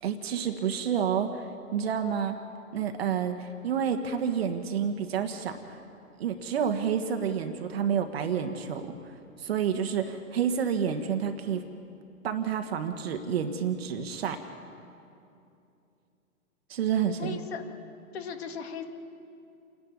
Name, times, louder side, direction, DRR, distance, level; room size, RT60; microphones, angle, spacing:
voice 1, 0.0-2.4 2.7-5.8 6.2-8.9 9.4-11.6 12.2-14.4 16.7-17.4, right 7 dB, 45° right, 6 dB, 1.4 m, -29 dB
voice 2, 17.2-17.6 18.1-18.8, left 5 dB, 45° left, 6 dB, 2.1 m, -37 dB
28.5 x 11.0 x 9.6 m, 2.7 s
hypercardioid pair, 155°, 42 cm